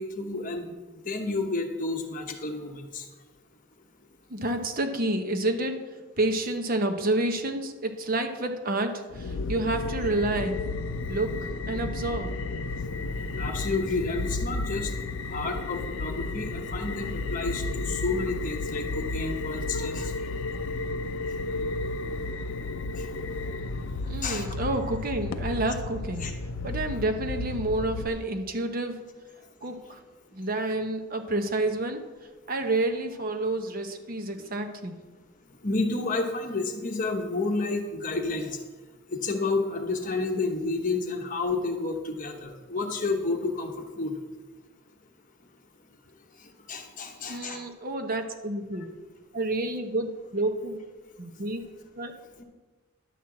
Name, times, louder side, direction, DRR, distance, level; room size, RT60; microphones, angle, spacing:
voice 1, 0.0-3.1 13.4-14.9 15.3-20.1 23.0-23.1 24.0-24.5 26.2-26.3 35.6-38.6 39.1-44.2 46.4-47.7, left 3 dB, 35° left, 4 dB, 1.0 m, -30 dB
voice 2, 4.3-5.8 6.2-10.6 11.1-12.3 24.1-26.3 26.6-29.0 29.6-30.0 30.3-32.0 32.5-35.0 47.3-48.9 49.3-50.8 51.2-51.6 52.0-52.1, right 2 dB, 40° right, 6 dB, 0.8 m, -29 dB
sound 1, 9.1-28.1, left 3 dB, 60° left, 0.5 m, -32 dB
11.0 x 4.4 x 7.5 m, 1.3 s
head